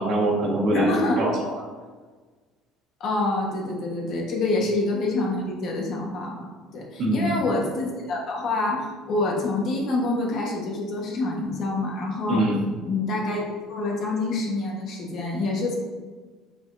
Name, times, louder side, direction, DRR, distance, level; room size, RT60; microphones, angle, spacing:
voice 1, 0.0-1.5 7.0-7.3 12.3-12.6, right 1 dB, 45° right, -3 dB, 1.7 m, -24 dB
voice 2, 0.7-1.2 3.0-6.4 6.7-12.4 12.8-15.8, left 2 dB, 45° left, -1 dB, 1.4 m, -26 dB
7.6 x 6.2 x 2.7 m, 1.4 s
cardioid pair, 165°, 0 cm